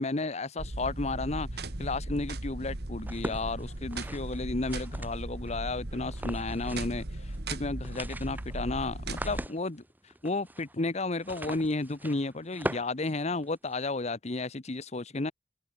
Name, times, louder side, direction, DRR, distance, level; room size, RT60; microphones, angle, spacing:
voice 1, 0.0-7.0 7.5-9.8 10.2-15.3, left 2 dB, 40° left, 1.0 m, -32 dB
sound 1, 0.6-9.5, right 1 dB, 65° right, 2.0 m, -37 dB
sound 2, 3.0-5.5 6.1-7.0 7.3-7.4 7.7-13.8, right 1 dB, 10° right, 2.8 m, -41 dB
head